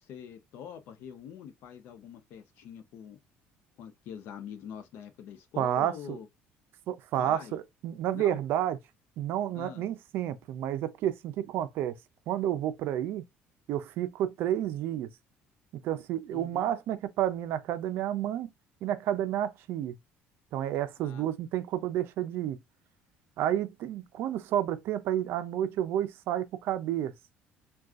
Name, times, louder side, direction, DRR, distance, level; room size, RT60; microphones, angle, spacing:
voice 1, 0.0-3.2 3.8-6.3 7.2-7.5 8.1-8.4 9.5-9.8 16.3-16.6 21.0-21.3, left 8 dB, 65° left, 0.6 m, -44 dB
voice 2, 5.6-6.2 6.9-8.8 9.2-12.0 12.3-13.2 13.7-15.1 15.8-18.5 18.8-19.9 20.5-22.6 23.4-27.1, right 11 dB, 65° right, 0.4 m, -30 dB
3.6 x 2.3 x 2.3 m
cardioid pair, 145°, 4 cm